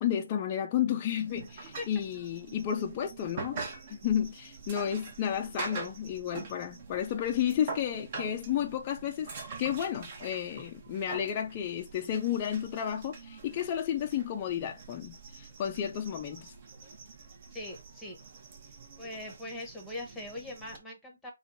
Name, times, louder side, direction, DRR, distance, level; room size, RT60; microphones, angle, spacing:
voice 1, 0.0-3.6 4.0-9.3 9.6-16.5, left 9 dB, 25° left, 0.5 m, -32 dB
sound 1, 1.2-20.8, right 4 dB, 30° right, 1.1 m, -45 dB
voice 2, 17.5-18.2 19.0-21.3, left 2 dB, ahead, 1.2 m, -41 dB
5.2 x 2.4 x 4.0 m
figure-of-eight pair, 160°, 0 cm